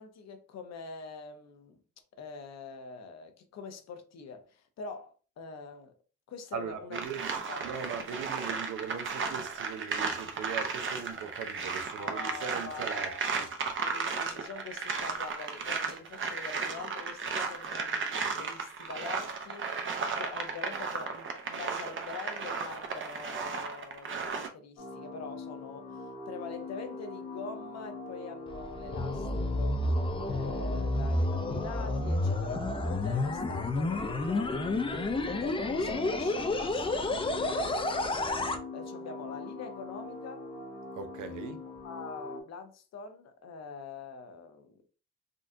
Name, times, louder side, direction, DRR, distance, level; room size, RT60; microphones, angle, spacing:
voice 1, 0.0-1.8 2.2-5.9 6.3-7.0 7.5-7.9 12.0-13.3 13.8-29.8 30.3-34.8 35.4-40.4 41.8-44.8, left 4 dB, 60° left, 0.7 m, -44 dB
voice 2, 6.5-7.3 7.6-13.5 30.6-30.8 40.9-41.6, right 6 dB, 85° right, 0.6 m, -40 dB
sound 1, 6.9-24.5, right 5 dB, 40° right, 0.7 m, -35 dB
sound 2, 24.8-42.4, left 2 dB, 85° left, 1.2 m, -43 dB
sound 3, 28.5-38.6, left 2 dB, 20° left, 0.5 m, -30 dB
3.7 x 2.4 x 2.6 m
cardioid pair, 90°, 30 cm